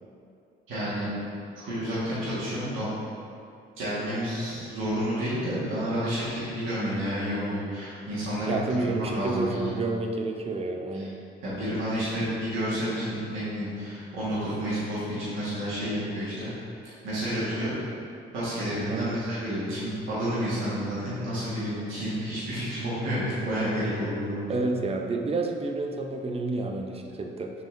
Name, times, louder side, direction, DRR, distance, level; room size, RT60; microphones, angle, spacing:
voice 1, 0.7-1.1 1.6-2.9 3.8-9.9 11.4-16.5 17.0-17.7 18.3-24.6, equal, 80° right, -11 dB, 1.5 m, -30 dB
voice 2, 8.5-11.2 18.9-19.2 24.5-27.5, right 3 dB, 30° right, 3 dB, 0.5 m, -29 dB
5.4 x 3.6 x 2.5 m, 2.4 s
cardioid pair, 90°, 20 cm